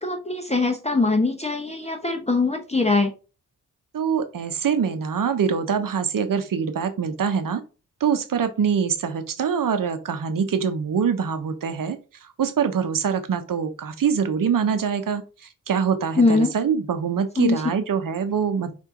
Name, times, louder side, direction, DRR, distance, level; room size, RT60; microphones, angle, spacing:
voice 1, 0.0-3.1 16.2-16.5 17.4-17.6, left 3 dB, 15° left, 3 dB, 0.9 m, -22 dB
voice 2, 3.9-7.6 8.0-18.7, right 7 dB, 55° right, 9 dB, 0.9 m, -24 dB
4.5 x 2.8 x 3.8 m, 0.32 s
supercardioid pair, 40°, 40 cm